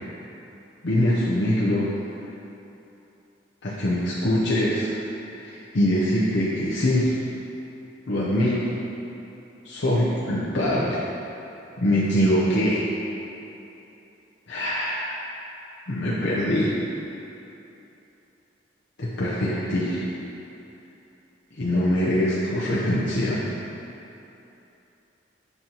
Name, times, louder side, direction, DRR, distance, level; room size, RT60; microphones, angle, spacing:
voice 1, 0.8-1.9 3.6-4.9 5.3-7.2 8.1-8.8 9.6-11.0 11.8-12.9 14.5-15.2 15.9-16.7 19.0-20.1 21.5-23.5, left 1 dB, 75° left, -7 dB, 0.8 m, -23 dB
7.9 x 5.4 x 3.0 m, 2.9 s
head